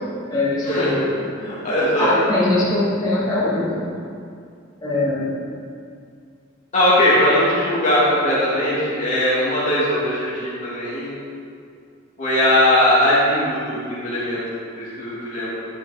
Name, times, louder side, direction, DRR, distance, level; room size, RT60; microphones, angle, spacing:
voice 1, 0.3-1.2 2.0-3.9 4.8-5.4, left 2 dB, 20° left, -10 dB, 2.5 m, -21 dB
voice 2, 1.3-2.1 6.7-11.2 12.2-14.4 14.8-15.5, left 1 dB, 40° left, -9 dB, 2.4 m, -19 dB
10.5 x 6.3 x 5.0 m, 2.3 s
head